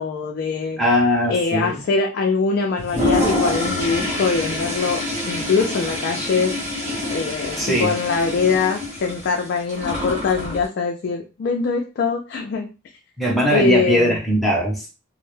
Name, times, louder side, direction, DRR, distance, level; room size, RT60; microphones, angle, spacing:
voice 1, 0.0-0.8 1.3-5.0 5.3-6.5 7.1-12.7 13.5-14.2, left 4 dB, 50° left, 2 dB, 0.3 m, -23 dB
voice 2, 0.8-1.8 7.6-7.9 13.2-14.9, equal, ahead, -2 dB, 0.7 m, -20 dB
Toilet flush, 2.8-10.7, left 1 dB, 35° right, 0.8 m, -26 dB
2.1 x 2.0 x 3.1 m, 0.31 s
head